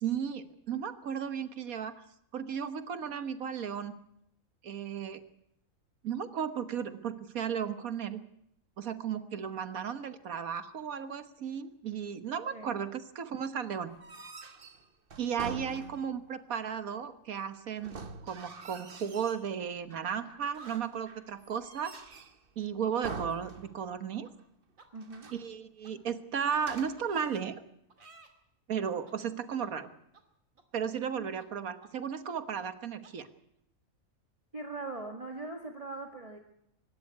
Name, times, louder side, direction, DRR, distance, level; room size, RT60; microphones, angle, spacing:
voice 1, 0.0-2.0 2.3-3.9 4.6-5.2 6.0-8.2 8.8-13.9 15.2-18.0 18.2-22.3 22.6-24.3 25.3-27.6 28.7-29.9 30.7-33.3, right 7 dB, 90° right, 11 dB, 1.7 m, -35 dB
sound 1, 13.9-16.3 17.8-19.5 19.9-20.5 21.1-22.5 23.0-24.1 24.4-24.5 25.0-25.5 26.5-27.2, right 4 dB, 40° right, 1.4 m, -45 dB
sound 2, 15.8-17.1 17.3-17.6 18.6-20.2 20.4-20.9 23.6-23.7 24.2-24.3 24.8-24.9 25.2-25.3 25.8-25.9 26.3-26.4 27.0-27.4 27.9-28.3 29.1-29.2 29.6-29.7 30.1-30.2 30.6-31.1 31.4-31.5 31.8-31.9 32.3-32.4 32.6-32.7 33.0-33.1, right 3 dB, 70° right, 2.8 m, -55 dB
voice 2, 24.9-25.3 31.2-31.3 34.5-36.4, right 3 dB, 25° right, 2 dB, 1.8 m, -41 dB
24.0 x 12.5 x 9.6 m, 0.76 s
omnidirectional pair, 1.4 m